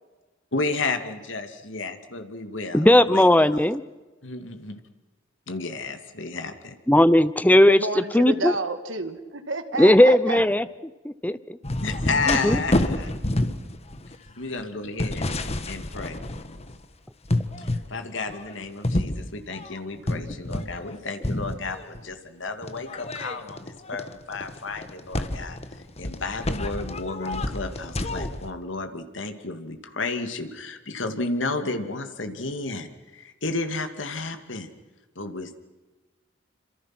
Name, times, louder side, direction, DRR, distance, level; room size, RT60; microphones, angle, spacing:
voice 1, 0.5-3.6 4.2-4.7 5.5-6.8 11.8-13.1 14.4-15.3 15.7-16.2 17.6-25.6 26.0-34.7 35.2-35.5, left 3 dB, 80° left, 7 dB, 2.6 m, -32 dB
voice 2, 2.7-3.8 6.9-8.5 9.8-10.7 11.0-11.6 12.3-12.6, left 1 dB, 10° left, 15 dB, 0.7 m, -17 dB
voice 3, 7.6-10.4, right 2 dB, 80° right, 8 dB, 2.2 m, -30 dB
sound 1, 11.6-16.8 17.2-17.9 18.3-21.0 21.2-22.0 22.6-28.5, left 1 dB, 35° left, 1.5 m, -29 dB
28.0 x 26.5 x 6.2 m, 1.2 s
head